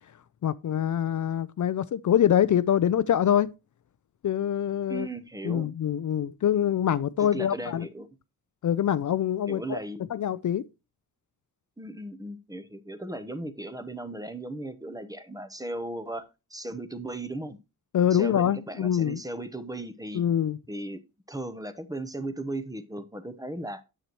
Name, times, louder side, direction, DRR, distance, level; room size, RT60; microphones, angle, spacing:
voice 1, 0.4-3.5 4.2-5.1 5.4-7.9 8.6-9.8 10.1-10.6 17.9-19.2 20.1-20.6, left 10 dB, 55° left, 0.5 m, -25 dB
voice 2, 4.9-5.7 7.2-8.1 9.5-10.1 11.8-17.6 18.1-20.2 20.7-21.0 21.3-23.8, right 2 dB, 10° right, 0.8 m, -37 dB
9.7 x 7.7 x 3.0 m
wide cardioid pair, 120°, 36 cm